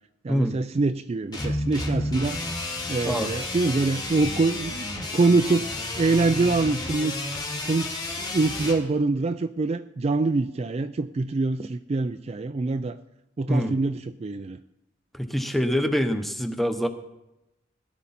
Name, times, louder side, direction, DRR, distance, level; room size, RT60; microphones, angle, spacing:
voice 1, 0.2-2.4 2.9-5.7 6.0-7.2 7.7-13.0 13.4-14.6, right 3 dB, 35° right, 10 dB, 0.4 m, -25 dB
sound 1, 1.3-8.8, left 2 dB, 20° left, 2.1 m, -31 dB
voice 2, 15.1-16.9, equal, ahead, 7 dB, 0.9 m, -25 dB
17.5 x 11.0 x 4.2 m, 0.92 s
head